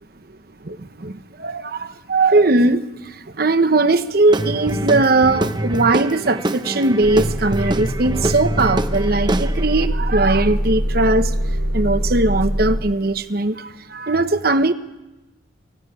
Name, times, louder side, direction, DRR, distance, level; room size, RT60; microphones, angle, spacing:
voice 1, 0.6-1.1 1.4-2.8 3.4-11.3 11.7-14.7, right 2 dB, 50° right, 11 dB, 1.0 m, -19 dB
Guitar / Drum, 4.3-9.9, right 1 dB, 25° right, 0.8 m, -25 dB
Motor vehicle (road) / Engine starting / Idling, 7.0-12.8, equal, 80° right, 5.8 m, -23 dB
22.5 x 15.5 x 9.9 m, 1.0 s
head